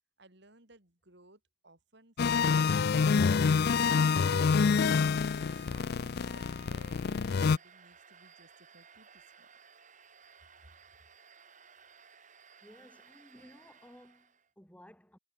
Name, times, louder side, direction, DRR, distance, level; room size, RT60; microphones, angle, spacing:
voice 1, 0.2-3.4 3.8-4.8 5.2-9.5, right 2 dB, 55° right, 3.6 m, -59 dB
sound 1, 2.2-7.6, left 5 dB, 50° left, 0.4 m, -27 dB
Domestic sounds home sounds, 2.4-14.5, right 6 dB, 40° right, 6.2 m, -58 dB
voice 2, 12.6-15.2, equal, 5° left, 2.8 m, -56 dB
head